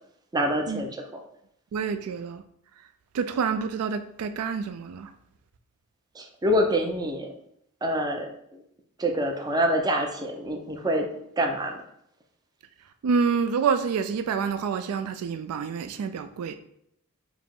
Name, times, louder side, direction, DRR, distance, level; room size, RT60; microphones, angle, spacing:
voice 1, 0.3-1.1 6.1-7.3 7.8-8.6 9.0-11.1 11.4-11.8, equal, 20° right, 0.5 m, -26 dB
voice 2, 1.7-2.4 3.1-5.1 13.0-16.6, right 6 dB, 90° right, 0.3 m, -27 dB
4.8 x 2.0 x 3.6 m
head